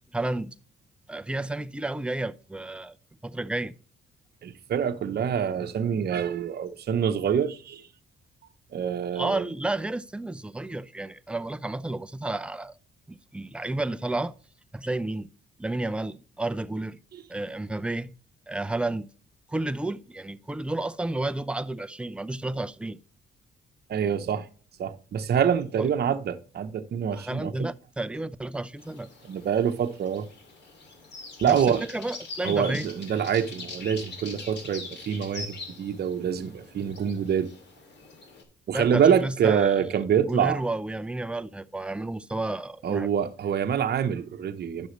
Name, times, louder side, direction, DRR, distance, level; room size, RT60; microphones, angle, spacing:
voice 1, 0.1-0.5 1.1-2.9 3.2-3.7 9.1-12.8 13.1-14.3 14.7-15.3 15.6-17.0 17.3-18.1 18.5-19.1 19.5-23.0 25.8-25.9 27.1-29.1 31.4-32.9 38.7-39.8 40.2-43.1, right 2 dB, 5° right, 0.5 m, -31 dB
voice 2, 4.4-7.9 8.7-9.5 23.9-24.5 24.8-27.7 29.2-30.3 31.4-31.8 32.4-37.5 38.7-40.6 42.8-44.9, right 8 dB, 55° right, 0.9 m, -26 dB
sound 1, 28.8-38.4, left 3 dB, 60° left, 2.6 m, -43 dB
10.5 x 6.3 x 3.1 m
cardioid pair, 90°, 20 cm